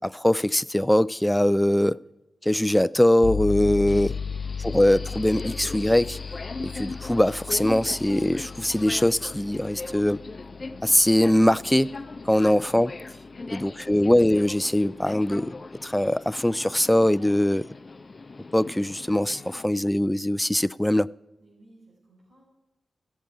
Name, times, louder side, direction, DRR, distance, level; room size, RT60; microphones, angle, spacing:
voice 1, 0.0-2.0 2.4-4.1 4.6-6.2 6.6-10.2 10.8-11.9 12.3-12.9 13.5-15.6 15.8-17.7 18.5-21.1, left 1 dB, 10° left, 0.3 m, -22 dB
sound 1, 3.2-13.8, left 6 dB, 65° left, 1.6 m, -36 dB
Subway metro underground, 3.9-19.7, left 3 dB, 45° left, 0.8 m, -40 dB
voice 2, 13.3-13.9 21.4-22.4, right 1 dB, 85° right, 4.5 m, -56 dB
17.0 x 7.3 x 4.7 m
cardioid pair, 50°, 0 cm